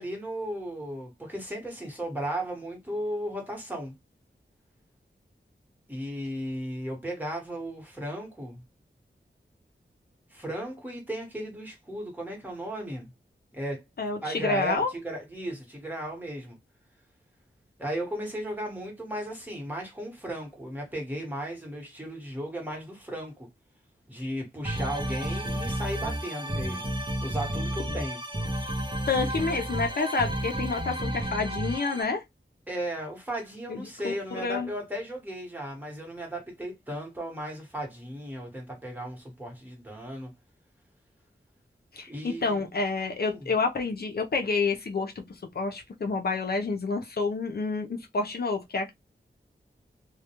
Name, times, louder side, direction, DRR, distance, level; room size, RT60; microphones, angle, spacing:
voice 1, 0.0-3.9 5.9-8.6 10.3-13.1 13.5-13.8 14.2-16.6 17.8-23.5 24.1-26.9 27.2-28.2 32.7-40.3 42.1-42.7 43.2-43.5, right 1 dB, 10° right, 1.1 m, -35 dB
voice 2, 14.0-14.9 29.1-32.2 33.7-34.7 41.9-45.2 45.5-48.9, left 4 dB, 55° left, 0.5 m, -29 dB
sound 1, 24.6-32.0, right 1 dB, 25° right, 0.6 m, -31 dB
2.2 x 2.1 x 2.9 m
wide cardioid pair, 55°, 20 cm